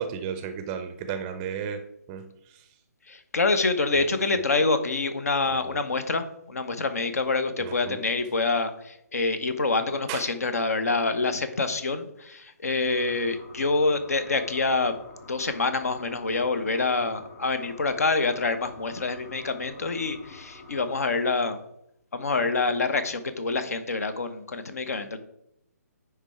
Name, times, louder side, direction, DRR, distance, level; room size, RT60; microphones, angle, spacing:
voice 1, 0.0-1.8 2.1-2.7 3.9-4.1 4.3-4.4 5.5-5.8 7.6-8.0 10.1-10.3, right 7 dB, 20° right, 7 dB, 0.5 m, -34 dB
voice 2, 3.1-15.0 15.3-21.6 22.1-25.2, left 3 dB, 65° left, 10 dB, 0.9 m, -26 dB
sound 1, 12.8-20.9, left 3 dB, 30° left, 2.6 m, -48 dB
9.9 x 3.4 x 4.8 m, 0.78 s
figure-of-eight pair, 140°, 9 cm